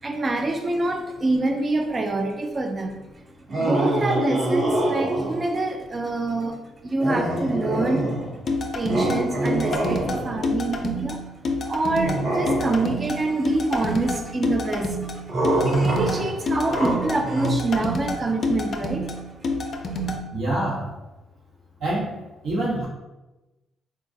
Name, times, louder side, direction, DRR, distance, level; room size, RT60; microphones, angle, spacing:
voice 1, 0.0-3.0 3.6-8.0 8.7-11.2 11.7-19.4 19.7-20.1, right 2 dB, 30° right, 4 dB, 0.4 m, -26 dB
sound 1, 3.5-5.6 7.0-8.4 8.9-10.5 12.0-13.1 15.3-17.5, right 1 dB, 45° right, 1.0 m, -25 dB
sound 2, 8.5-20.2, left 2 dB, 50° left, 0.4 m, -28 dB
voice 2, 20.3-20.9 21.8-22.1 22.4-22.9, right 1 dB, 80° right, -6 dB, 1.2 m, -25 dB
3.8 x 2.3 x 2.7 m, 1.0 s
cardioid pair, 90°, 0 cm